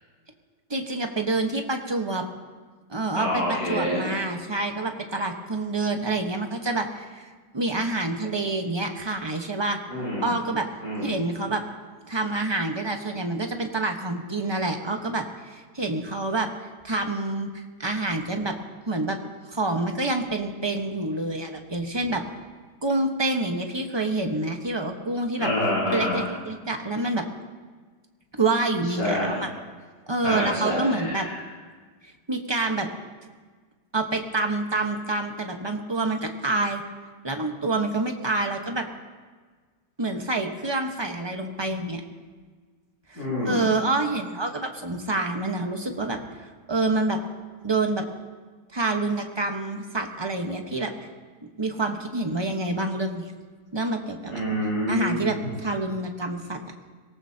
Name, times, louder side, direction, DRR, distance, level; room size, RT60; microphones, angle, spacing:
voice 1, 0.7-2.2 2.9-9.8 10.2-10.7 11.0-11.6 12.1-16.5 16.8-18.6 18.9-19.2 19.5-22.2 22.8-25.5 25.9-27.2 28.4-29.5 30.1-31.3 32.3-32.9 33.9-36.8 37.2-38.9 40.0-42.0 43.1-47.2 47.6-48.0 48.7-50.9 51.6-53.3 53.7-54.4 54.9-56.6, right 2 dB, 20° right, 3 dB, 1.1 m, -27 dB
voice 2, 3.1-4.1 9.9-10.3 10.8-11.1 25.4-26.3 29.0-29.4 30.2-31.4 43.1-43.6 54.3-55.3, left 1 dB, 60° left, -7 dB, 6.4 m, -27 dB
24.5 x 18.0 x 2.9 m, 1.5 s
omnidirectional pair, 1.7 m